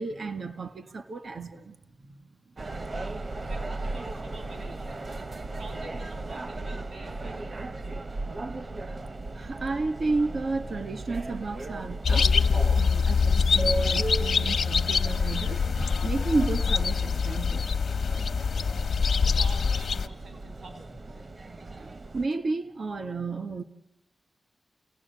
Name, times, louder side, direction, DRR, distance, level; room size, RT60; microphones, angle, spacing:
voice 1, 0.0-1.8 2.0-2.2 9.3-12.3 12.6-15.6 16.0-17.7 21.8-23.6, right 3 dB, 60° right, 1.8 m, -32 dB
sound 1, 2.6-22.3, right 2 dB, 45° right, 0.8 m, -37 dB
voice 2, 3.5-5.0 5.6-7.4 19.1-21.0, right 2 dB, 80° right, 4.3 m, -47 dB
sound 2, 12.0-20.1, left 5 dB, 75° left, 0.8 m, -24 dB
30.0 x 17.5 x 8.5 m
wide cardioid pair, 90°, 0 cm